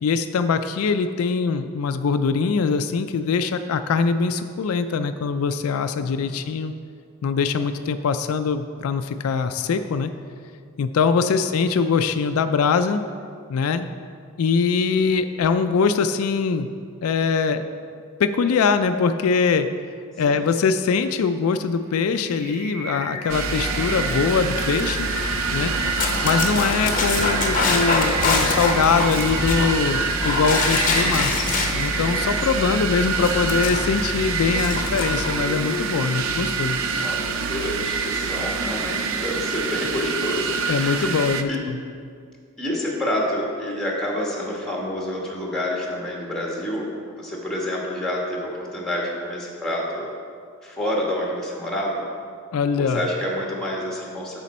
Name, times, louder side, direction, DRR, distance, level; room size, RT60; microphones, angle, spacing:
voice 1, 0.0-6.7 7.2-10.1 10.8-13.0 13.5-13.9 14.4-16.7 17.0-17.6 18.2-19.7 20.2-25.1 25.5-25.7 26.2-31.3 31.7-36.8 40.7-41.8 52.5-53.0, left 5 dB, 80° left, 9 dB, 0.4 m, -22 dB
voice 2, 6.0-6.4 11.2-11.3 20.3-20.4 25.8-26.2 32.6-32.8 37.0-37.2 37.5-40.5 40.8-41.2 41.5-41.6 42.6-46.9 47.2-50.1 50.6-52.0 52.7-54.4, left 1 dB, 5° left, -3 dB, 1.3 m, -28 dB
Singing, 21.6-37.9, equal, 50° right, 2.0 m, -35 dB
Dog, 23.3-35.4, left 3 dB, 35° left, 0.8 m, -26 dB
sound 1, 23.3-41.4, right 5 dB, 65° right, 0.5 m, -27 dB
9.2 x 6.3 x 4.2 m, 2.2 s
head